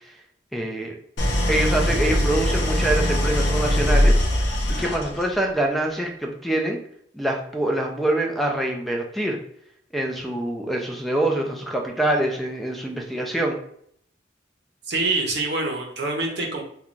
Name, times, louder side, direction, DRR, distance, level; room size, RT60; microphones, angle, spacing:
voice 1, 0.5-0.9 1.5-4.2 4.7-6.8 7.1-9.4 9.9-13.6, right 1 dB, ahead, 1 dB, 0.4 m, -25 dB
Idling, 1.2-5.4, left 1 dB, 65° left, 0.6 m, -21 dB
voice 2, 14.9-16.6, right 2 dB, 60° right, 1 dB, 0.7 m, -25 dB
3.1 x 2.2 x 2.4 m, 0.67 s
head